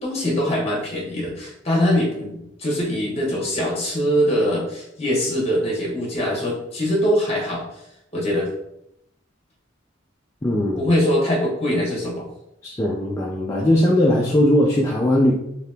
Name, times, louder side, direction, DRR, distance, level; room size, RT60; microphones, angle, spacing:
voice 1, 0.0-7.8 8.1-8.5 10.8-12.3, equal, 30° left, -3 dB, 1.0 m, -22 dB
voice 2, 10.4-10.9 12.6-15.3, left 1 dB, 15° left, -3 dB, 0.3 m, -19 dB
2.9 x 2.7 x 3.3 m, 0.81 s
head